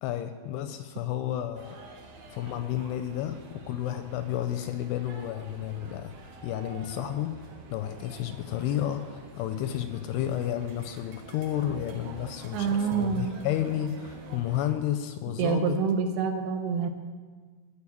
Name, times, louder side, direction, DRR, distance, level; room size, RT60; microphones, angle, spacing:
voice 1, 0.0-1.8 2.3-6.2 6.4-7.4 7.7-15.8, left 11 dB, 85° left, 9 dB, 2.4 m, -31 dB
sound 1, 1.5-14.7, right 3 dB, 60° right, 2.5 m, -47 dB
voice 2, 12.5-13.4 15.4-16.9, right 6 dB, 80° right, 6 dB, 2.6 m, -27 dB
14.0 x 4.9 x 8.3 m, 1.5 s
omnidirectional pair, 4.9 m